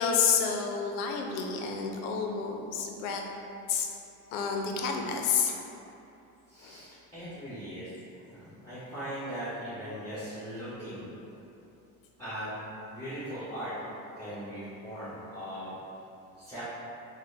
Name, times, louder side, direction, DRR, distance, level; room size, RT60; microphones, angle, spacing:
voice 1, 0.0-3.2 3.7-3.9 4.3-5.6 6.6-6.8, left 6 dB, 90° left, 2 dB, 0.5 m, -29 dB
voice 2, 6.5-7.9 8.2-11.0 12.2-12.5 12.9-13.7 14.2-15.7 16.4-16.6, equal, 10° left, -17 dB, 1.4 m, -39 dB
3.9 x 2.2 x 3.4 m, 2.8 s
supercardioid pair, 85°, 40 cm